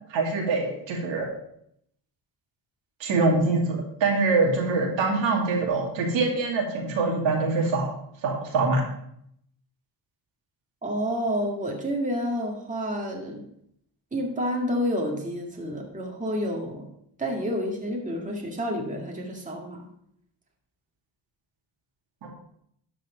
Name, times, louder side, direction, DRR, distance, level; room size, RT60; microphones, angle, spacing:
voice 1, 0.1-1.3 3.0-7.9 8.2-8.8 22.2-22.3, right 3 dB, 75° right, 0 dB, 2.6 m, -24 dB
voice 2, 10.8-13.4 14.1-16.9 17.2-19.9, equal, 15° right, 0 dB, 2.1 m, -29 dB
12.5 x 4.9 x 5.0 m, 0.72 s
cardioid pair, 100°, 45 cm